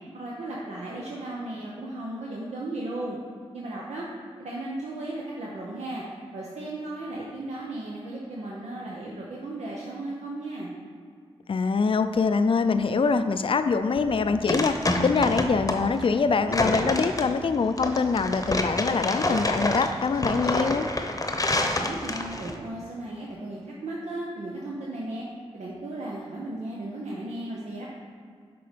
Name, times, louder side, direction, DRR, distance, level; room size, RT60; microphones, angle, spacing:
voice 1, 0.1-3.2 3.5-4.1 4.4-6.0 6.3-10.7 21.7-25.2 25.5-27.9, right 2 dB, 90° right, -4 dB, 0.8 m, -35 dB
voice 2, 11.5-20.9, left 4 dB, 55° left, 10 dB, 0.4 m, -24 dB
sound 1, 14.0-22.5, left 1 dB, 30° left, 0.8 m, -27 dB
6.8 x 3.8 x 5.1 m, 2.2 s
cardioid pair, 45°, 11 cm